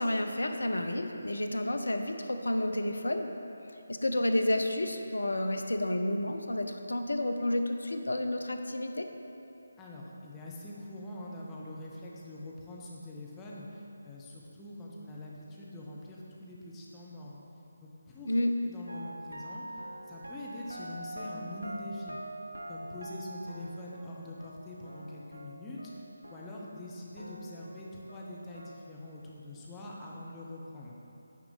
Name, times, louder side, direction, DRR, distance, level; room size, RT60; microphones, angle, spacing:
voice 1, 0.0-3.3 3.9-9.1 18.2-18.5, left 1 dB, 70° left, 6 dB, 0.6 m, -30 dB
voice 2, 9.8-17.4 17.8-19.6 20.1-22.2 22.7-25.9 26.3-30.9, left 1 dB, 10° left, -5 dB, 0.8 m, -44 dB
sound 1, 18.9-26.9 27.2-28.9, right 1 dB, 80° right, 0.6 m, -45 dB
9.3 x 4.9 x 3.9 m, 2.9 s
figure-of-eight pair, 155°, 0 cm